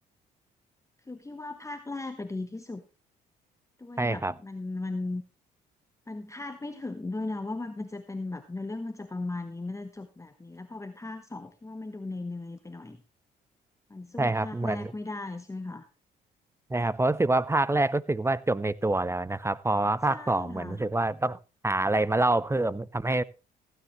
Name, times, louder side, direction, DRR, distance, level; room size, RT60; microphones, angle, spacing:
voice 1, 1.1-2.8 3.8-5.2 6.1-13.0 13.9-15.8 20.1-20.8, left 2 dB, 15° left, 8 dB, 1.1 m, -37 dB
voice 2, 4.0-4.3 14.2-14.9 16.7-21.4 21.6-23.2, right 2 dB, 15° right, 21 dB, 0.6 m, -26 dB
16.0 x 9.7 x 3.1 m, 0.30 s
hypercardioid pair, 55°, 20 cm